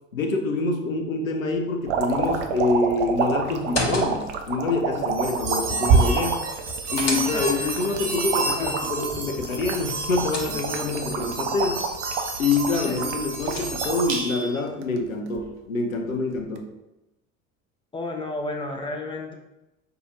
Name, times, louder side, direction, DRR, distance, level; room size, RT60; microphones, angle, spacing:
voice 1, 0.1-6.4 6.9-11.8 12.4-16.7, left 3 dB, 85° left, 4 dB, 0.6 m, -26 dB
sound 1, 1.9-14.2 14.7-15.4 16.4-16.6, right 6 dB, 60° right, 0.6 m, -29 dB
sound 2, 3.6-4.5 6.5-7.7 9.7-11.0 13.0-14.1, left 3 dB, 40° left, 1.0 m, -34 dB
sound 3, 5.1-14.6, right 4 dB, 45° right, 1.1 m, -28 dB
voice 2, 7.3-7.8 8.5-8.7 12.8-13.0 17.9-19.3, left 2 dB, 15° left, 2 dB, 0.5 m, -32 dB
5.5 x 2.7 x 2.6 m, 0.95 s
figure-of-eight pair, 65°, 40 cm